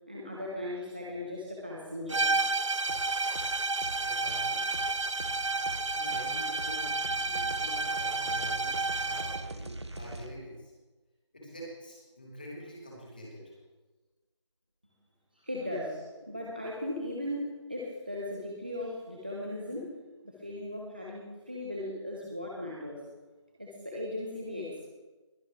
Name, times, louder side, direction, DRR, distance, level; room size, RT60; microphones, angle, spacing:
voice 1, 0.1-2.3 15.4-19.9 20.2-23.0 23.6-24.8, left 1 dB, 20° right, -4 dB, 1.0 m, -37 dB
sound 1, 2.1-9.5, right 3 dB, 75° right, 0.6 m, -31 dB
sound 2, 2.9-3.5 3.8-10.3, right 1 dB, 60° right, 1.4 m, -43 dB
voice 2, 4.0-4.6 5.9-8.7 9.0-10.7 11.3-13.5 15.4-15.5 21.9-22.0, equal, 20° left, -5 dB, 2.9 m, -45 dB
21.5 x 11.5 x 3.4 m, 1.2 s
figure-of-eight pair, 180°, 16 cm